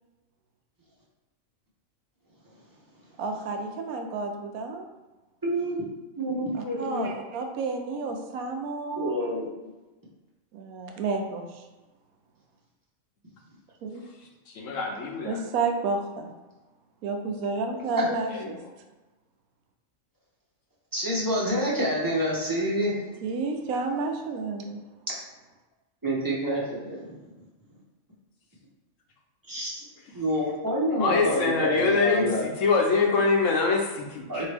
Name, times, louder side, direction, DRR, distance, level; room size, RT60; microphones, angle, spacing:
voice 1, 3.2-4.9 6.5-9.1 10.5-11.6 13.8-14.0 15.2-16.3 17.0-18.6 22.9-24.8, right 4 dB, 85° right, 4 dB, 1.1 m, -31 dB
voice 2, 5.4-5.8 6.2-7.1 9.0-9.5 18.0-18.1 20.9-22.9 26.0-27.0 29.5-29.8 30.1-32.5 34.3-34.5, equal, 20° right, -6 dB, 0.8 m, -27 dB
voice 3, 14.5-15.4 18.3-18.6 31.0-34.5, left 4 dB, 70° left, 1 dB, 1.0 m, -24 dB
4.3 x 2.8 x 3.3 m, 1.1 s
omnidirectional pair, 1.5 m